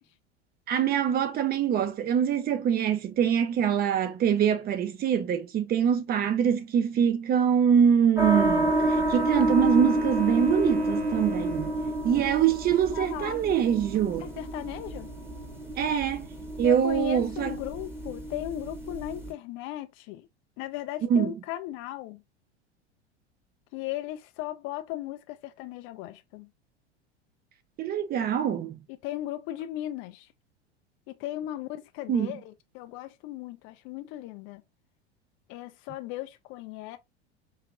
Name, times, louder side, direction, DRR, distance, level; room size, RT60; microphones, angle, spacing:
voice 1, 0.7-11.7 12.0-14.3 15.8-16.3 16.6-17.5 21.1-21.3 27.8-28.8 32.1-32.4, right 8 dB, 30° right, 0.6 m, -24 dB
sound 1, 8.2-19.3, right 1 dB, 5° right, 1.0 m, -29 dB
Wind instrument woodwind instrument, 8.3-11.9, right 2 dB, 55° right, 2.3 m, -44 dB
voice 2, 12.9-13.4 14.2-15.1 16.6-20.3 20.6-22.2 23.7-26.5 29.0-30.3 31.2-32.4 32.7-34.6 35.5-37.0, left 14 dB, 40° left, 0.4 m, -36 dB
4.7 x 2.8 x 2.3 m
figure-of-eight pair, 85°, 34 cm